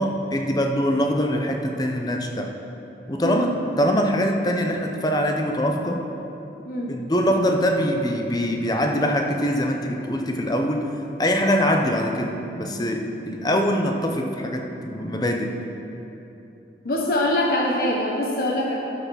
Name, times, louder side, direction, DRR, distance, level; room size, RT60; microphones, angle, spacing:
voice 1, 0.0-2.5 3.1-6.0 6.9-10.9 11.2-15.6, equal, 20° left, 3 dB, 0.8 m, -23 dB
voice 2, 3.2-3.5 6.6-6.9 16.8-18.8, left 1 dB, 55° left, -3 dB, 1.1 m, -23 dB
12.5 x 5.7 x 6.2 m, 2.9 s
head